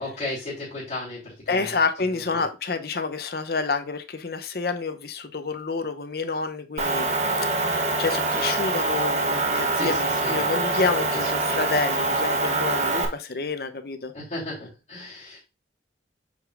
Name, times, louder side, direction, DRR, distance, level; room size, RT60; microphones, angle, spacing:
voice 1, 0.0-1.8 2.1-2.4 9.8-10.4 11.1-11.3 14.1-15.4, left 2 dB, 40° left, 3.0 m, -35 dB
voice 2, 1.5-7.1 7.4-14.1, left 4 dB, 55° left, 0.7 m, -28 dB
Motor vehicle (road) / Engine, 6.8-13.1, right 2 dB, 40° right, 0.9 m, -24 dB
8.0 x 5.0 x 2.5 m
head